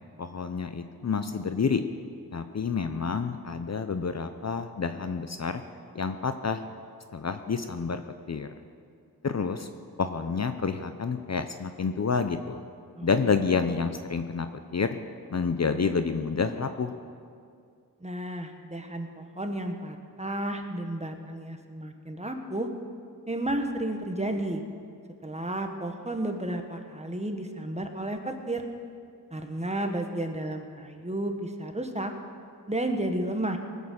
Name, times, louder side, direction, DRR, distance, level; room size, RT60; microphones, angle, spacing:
voice 1, 0.2-1.8 2.3-5.6 5.9-6.6 7.1-8.0 8.3-8.5 9.2-9.7 10.0-12.6 13.0-14.5 14.7-15.0 15.3-16.9, left 5 dB, 45° left, 8 dB, 0.7 m, -28 dB
voice 2, 18.0-22.7 23.3-24.6 25.2-28.7 29.3-32.1 32.7-33.6, right 1 dB, 15° right, 4 dB, 1.5 m, -32 dB
19.0 x 8.1 x 6.4 m, 2.3 s
cardioid pair, 55°, 38 cm